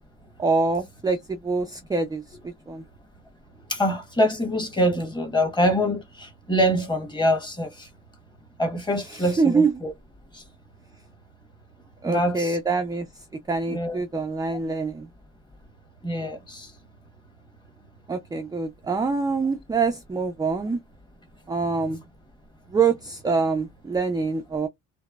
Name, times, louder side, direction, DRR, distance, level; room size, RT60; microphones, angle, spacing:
voice 1, 0.4-2.2 2.7-2.8 9.1-9.7 12.0-13.1 13.5-15.1 18.1-20.8 21.5-22.0 22.7-24.7, right 4 dB, 15° right, 0.3 m, -25 dB
voice 2, 3.7-7.9 8.6-9.9 10.3-10.4 12.0-12.6 13.7-14.0 16.0-16.7, equal, 15° left, 1.2 m, -25 dB
3.0 x 2.0 x 2.3 m
cardioid pair, 90°, 30 cm